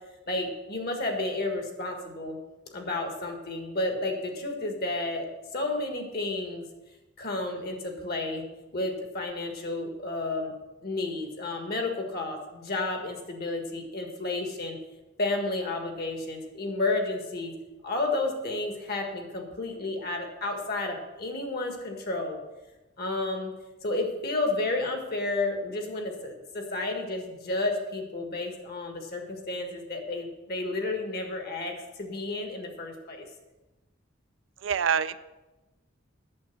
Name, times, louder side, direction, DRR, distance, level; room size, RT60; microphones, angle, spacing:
voice 1, 0.3-2.4 2.7-5.3 5.5-6.6 7.2-8.4 8.7-10.5 10.8-14.8 15.2-17.6 17.8-22.4 23.0-23.5 23.8-33.2, left 2 dB, 55° left, 3 dB, 1.7 m, -31 dB
voice 2, 34.6-35.2, right 7 dB, 75° right, 13 dB, 0.4 m, -25 dB
8.6 x 7.3 x 6.0 m, 1.1 s
head